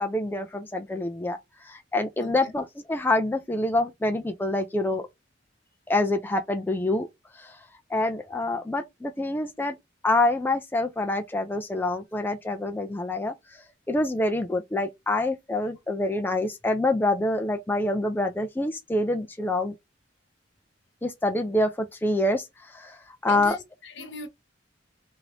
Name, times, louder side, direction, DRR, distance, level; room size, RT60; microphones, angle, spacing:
voice 1, 0.0-5.1 5.9-7.1 7.3-7.6 7.9-9.8 10.0-19.7 21.0-23.6, left 2 dB, 10° left, 0.3 m, -26 dB
voice 2, 23.3-24.3, left 2 dB, 70° left, 0.9 m, -39 dB
2.9 x 2.6 x 3.1 m
head